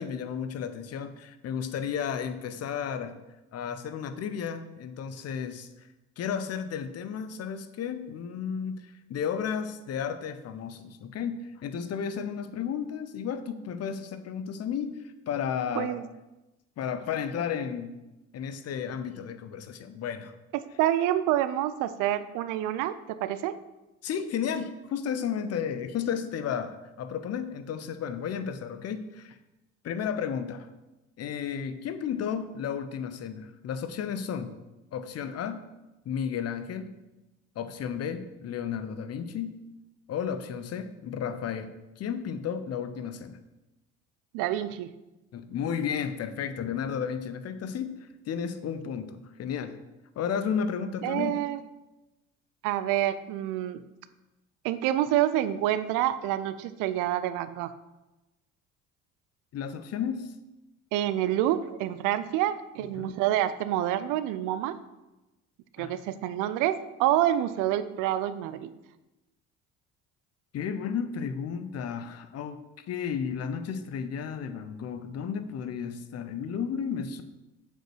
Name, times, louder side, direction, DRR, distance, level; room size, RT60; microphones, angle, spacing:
voice 1, 0.0-3.2 3.5-5.7 6.2-15.0 15.3-16.0 16.8-17.9 18.3-20.3 24.0-29.4 29.8-30.7 31.2-34.5 34.9-35.6 36.1-36.9 37.6-39.6 40.1-43.4 45.3-49.8 50.2-51.4 59.5-60.3 62.9-63.2 65.8-66.0 70.5-72.6 72.9-77.2, left 7 dB, 45° left, 11 dB, 0.8 m, -33 dB
voice 2, 20.8-23.0 23.2-23.5 44.3-44.9 51.0-51.6 52.6-53.8 54.6-57.7 60.9-64.8 65.8-68.7, right 12 dB, 60° right, 13 dB, 0.6 m, -27 dB
7.4 x 5.3 x 4.6 m, 1.0 s
hypercardioid pair, 60°, 36 cm